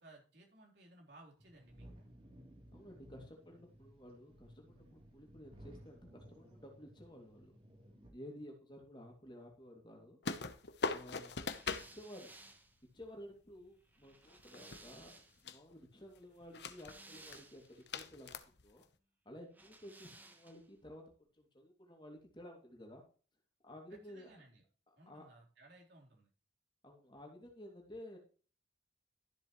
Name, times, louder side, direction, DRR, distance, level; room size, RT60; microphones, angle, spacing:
voice 1, 0.0-2.1 23.9-24.6 25.0-26.3, right 2 dB, 70° right, -2 dB, 3.7 m, -60 dB
sound 1, 1.4-8.1, right 1 dB, 30° right, 3.1 m, -58 dB
voice 2, 2.7-7.5 8.1-10.2 10.9-11.3 11.9-12.3 12.9-15.1 15.4-18.8 19.2-21.1 21.4-23.0 23.6-24.3 25.1-25.3 26.8-28.2, equal, 25° left, 1 dB, 2.5 m, -53 dB
sound 2, 10.2-11.9 14.3-15.2 15.4-15.7 16.4-17.0 17.3-17.4 17.9-18.8, left 4 dB, 70° left, 0.9 m, -40 dB
sound 3, 11.4-15.5 16.4-17.9 19.5-20.8, right 2 dB, 10° right, 1.2 m, -59 dB
13.0 x 7.7 x 3.1 m, 0.39 s
head